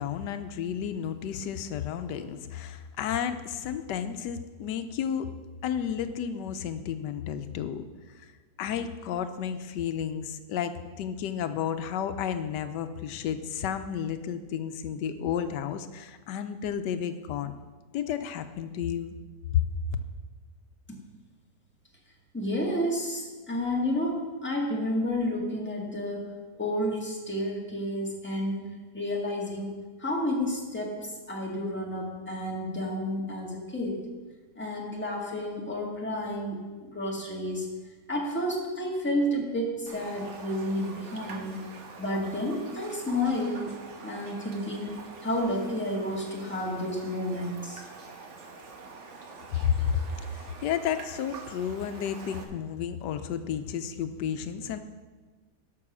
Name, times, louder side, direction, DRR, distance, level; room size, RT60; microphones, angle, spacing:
voice 1, 0.0-5.3 5.6-8.3 8.6-17.5 17.9-19.2 19.5-19.7 49.5-54.8, left 8 dB, 90° left, 9 dB, 1.3 m, -32 dB
voice 2, 22.3-34.1 34.6-37.7 38.1-41.7 42.0-43.7 44.0-47.8, left 1 dB, 5° left, -2 dB, 1.7 m, -31 dB
Raindrop, 39.9-52.4, right 4 dB, 50° right, 1.2 m, -45 dB
12.5 x 6.2 x 6.1 m, 1.3 s
omnidirectional pair, 1.8 m